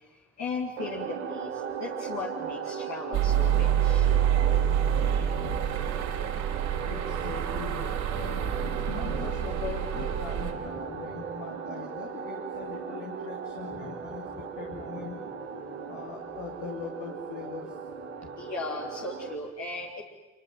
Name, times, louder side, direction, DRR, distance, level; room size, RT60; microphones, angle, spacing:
voice 1, 0.4-4.1 6.3-6.5 8.7-9.4 10.0-10.1 13.7-13.8 15.1-16.1 18.4-20.0, left 3 dB, 50° left, -2 dB, 3.5 m, -38 dB
sound 1, 0.8-19.3, right 7 dB, 85° right, 2.2 m, -37 dB
sound 2, 3.1-10.5, right 10 dB, 65° right, 4.1 m, -27 dB
voice 2, 6.8-15.1 15.9-17.7, left 6 dB, 70° left, 0 dB, 3.0 m, -41 dB
26.5 x 23.5 x 7.8 m, 1.2 s
figure-of-eight pair, 50°, 34 cm